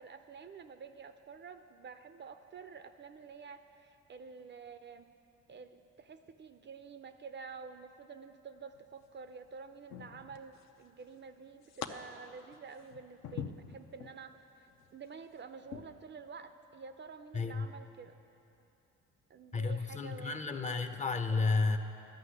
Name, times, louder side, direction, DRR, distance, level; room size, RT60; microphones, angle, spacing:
voice 1, 0.0-5.1 5.5-14.7 14.9-18.1 19.3-20.9, right 5 dB, 40° right, 9 dB, 0.4 m, -49 dB
sound 1, 8.7-9.2 9.9-10.8 11.1-11.9 12.3-14.2 14.7-14.9 15.6-15.8, left 8 dB, 65° left, 0.7 m, -44 dB
voice 2, 17.3-17.7 19.5-21.8, left 4 dB, 25° left, 7 dB, 0.6 m, -32 dB
11.5 x 5.7 x 8.1 m, 2.8 s
cardioid pair, 90°, 30 cm